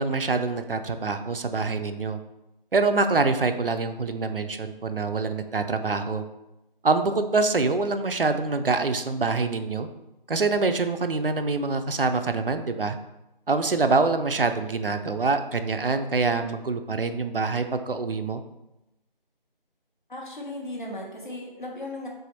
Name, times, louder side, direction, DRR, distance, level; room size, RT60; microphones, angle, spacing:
voice 1, 0.0-2.2 2.7-6.2 6.8-9.9 10.3-13.0 13.5-18.4, right 3 dB, 70° right, 8 dB, 0.5 m, -25 dB
voice 2, 20.1-22.1, left 1 dB, 55° left, -1 dB, 1.2 m, -36 dB
3.8 x 3.4 x 4.0 m, 0.93 s
figure-of-eight pair, 165°, 29 cm